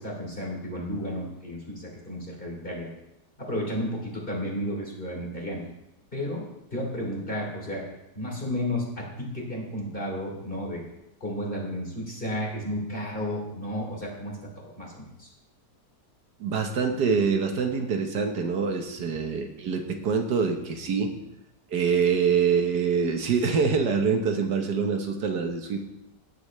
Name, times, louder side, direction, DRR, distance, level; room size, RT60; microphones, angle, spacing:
voice 1, 0.0-2.9 3.4-5.6 6.1-6.4 6.7-7.8 8.1-10.8 11.2-15.3, equal, 30° left, -2 dB, 3.2 m, -32 dB
voice 2, 16.4-21.1 21.7-25.8, right 5 dB, 75° right, 4 dB, 1.7 m, -25 dB
16.0 x 10.0 x 3.2 m, 0.93 s
omnidirectional pair, 1.8 m